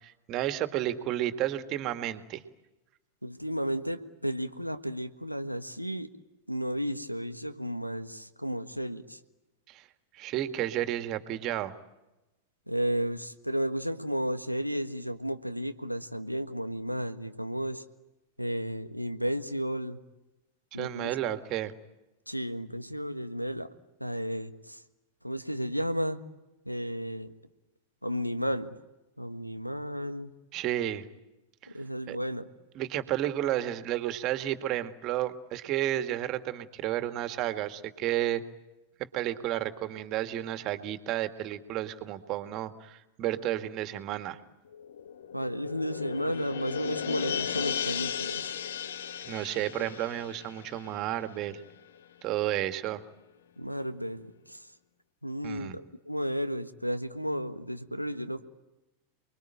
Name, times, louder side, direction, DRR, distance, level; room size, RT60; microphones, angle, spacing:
voice 1, 0.0-2.4 9.7-9.8 10.1-11.7 20.8-21.7 30.5-31.0 31.6-31.7 32.1-32.2 32.8-38.4 39.1-44.4 49.3-51.6 52.2-53.0 55.4-55.8, right 13 dB, 35° right, 10 dB, 1.9 m, -32 dB
voice 2, 3.2-6.1 6.5-9.2 12.7-17.8 18.4-20.0 20.7-21.1 22.3-23.7 24.0-24.8 25.2-26.2 26.6-27.3 28.0-28.7 29.2-30.3 31.7-32.5 45.3-48.5 53.6-54.7 55.2-58.4, equal, 90° left, 11 dB, 1.5 m, -33 dB
sound 1, 44.7-51.7 52.0-52.1, left 8 dB, 60° left, 1.3 m, -36 dB
29.5 x 22.0 x 9.1 m, 0.99 s
figure-of-eight pair, 90°, 0 cm